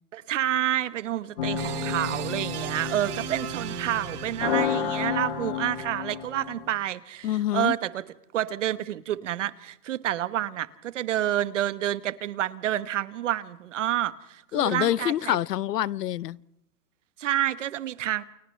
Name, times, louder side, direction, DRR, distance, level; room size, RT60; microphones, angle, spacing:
voice 1, 0.1-8.0 8.3-15.4 17.2-18.2, right 12 dB, 50° right, 1.2 m, -29 dB
sound 1, 1.4-6.7, left 6 dB, 35° left, 1.3 m, -31 dB
sound 2, 1.6-5.3, right 13 dB, 70° right, 0.8 m, -38 dB
voice 2, 7.2-7.8 14.5-16.4, left 12 dB, 85° left, 0.8 m, -26 dB
29.0 x 28.5 x 3.2 m
hypercardioid pair, 165°, 47 cm